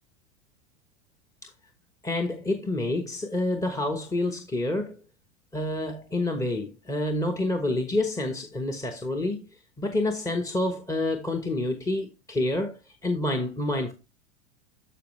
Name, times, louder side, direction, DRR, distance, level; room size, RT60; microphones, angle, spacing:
voice 1, 2.0-5.0 5.5-13.9, left 2 dB, 10° left, 1.1 m, -28 dB
12.5 x 5.2 x 3.2 m
hypercardioid pair, 115°, 34 cm